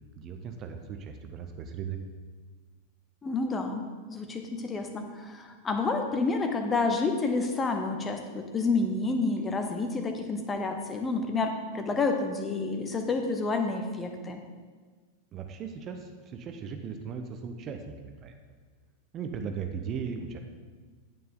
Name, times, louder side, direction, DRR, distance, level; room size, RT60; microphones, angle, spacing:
voice 1, 0.2-2.0 15.3-18.4 19.1-20.4, right 6 dB, 30° right, 5 dB, 0.8 m, -37 dB
voice 2, 3.2-14.4, left 3 dB, 20° left, 5 dB, 1.0 m, -29 dB
9.4 x 8.9 x 3.9 m, 1.5 s
figure-of-eight pair, 90°, 0 cm